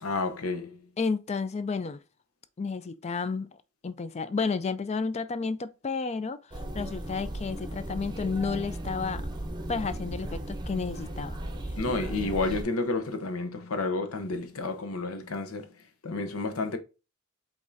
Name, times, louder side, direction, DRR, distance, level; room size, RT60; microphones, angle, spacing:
voice 1, 0.0-0.8 11.8-15.7 16.0-16.8, left 3 dB, 80° left, 0.9 m, -30 dB
voice 2, 1.0-2.0 2.6-3.5 3.8-6.4 6.7-9.3 9.7-11.4, left 4 dB, 30° left, 0.4 m, -31 dB
sound 1, 6.5-12.6, right 1 dB, 20° right, 0.7 m, -36 dB
5.3 x 3.6 x 2.7 m
head